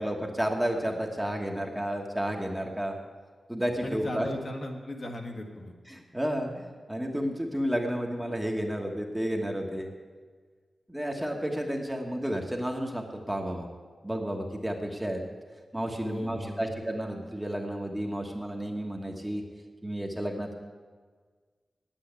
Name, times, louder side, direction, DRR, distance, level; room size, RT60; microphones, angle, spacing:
voice 1, 0.0-2.9 3.5-4.3 5.9-6.5 6.9-9.9 10.9-13.7 14.0-15.2 15.7-19.4 19.8-20.5, equal, 5° right, 1 dB, 1.3 m, -31 dB
voice 2, 3.8-5.7 16.0-16.7, left 1 dB, 45° left, 2 dB, 1.5 m, -37 dB
9.3 x 8.8 x 9.3 m, 1.5 s
wide cardioid pair, 110°, 0 cm